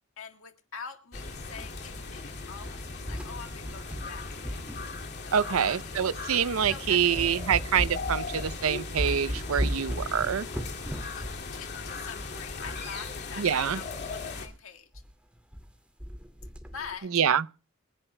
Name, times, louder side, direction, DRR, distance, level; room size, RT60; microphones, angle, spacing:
voice 1, 0.2-4.6 5.1-6.4 6.7-7.2 11.2-15.0 16.7-17.2, left 6 dB, 75° left, 1.8 m, -45 dB
sound 1, 1.1-14.5, left 4 dB, 55° left, 2.4 m, -38 dB
sound 2, 1.1-2.3 2.6-5.6 6.1-6.2 6.6-6.8 7.1-13.2 13.5-13.6 13.8-13.9 14.3-14.5 14.9-15.1 15.3-15.7 16.0-16.9, equal, 5° right, 2.1 m, -37 dB
voice 2, 5.3-10.5 13.4-13.8 17.1-17.4, right 8 dB, 85° right, 0.6 m, -26 dB
28.5 x 10.5 x 2.2 m
head